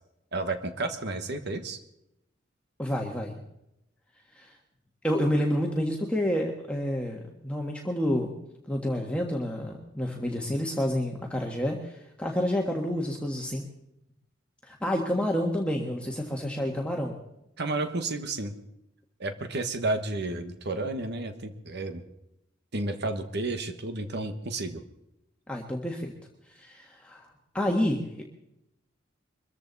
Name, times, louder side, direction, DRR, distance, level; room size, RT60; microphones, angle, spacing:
voice 1, 0.3-1.8 17.6-18.5 19.2-22.0 22.7-24.8, right 2 dB, 60° right, 8 dB, 1.4 m, -31 dB
voice 2, 2.8-3.3 4.3-4.6 5.0-8.3 8.7-13.6 14.6-17.1 25.5-26.1 26.5-28.2, equal, 5° left, 0 dB, 1.6 m, -29 dB
23.0 x 14.5 x 4.1 m, 0.83 s
head